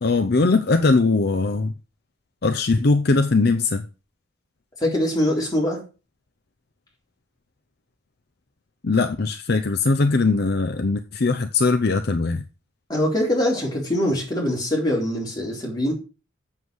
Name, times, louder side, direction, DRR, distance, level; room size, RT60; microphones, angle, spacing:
voice 1, 0.0-1.7 2.4-3.8 8.8-12.4, left 3 dB, 50° left, 0.6 m, -20 dB
voice 2, 4.8-5.8 12.9-15.9, left 1 dB, 20° left, 4.1 m, -23 dB
7.8 x 7.4 x 6.3 m
head